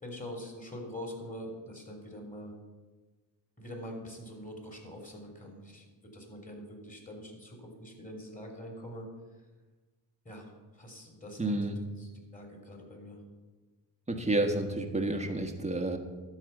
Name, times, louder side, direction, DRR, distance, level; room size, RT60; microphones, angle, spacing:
voice 1, 0.0-2.5 3.6-5.8 6.1-9.1 10.2-10.5 10.7-13.2, equal, 15° left, 1 dB, 3.4 m, -44 dB
voice 2, 11.4-11.8 14.1-16.0, right 2 dB, 15° right, 4 dB, 1.5 m, -30 dB
12.0 x 4.9 x 7.9 m, 1.3 s
cardioid pair, 75°, 46 cm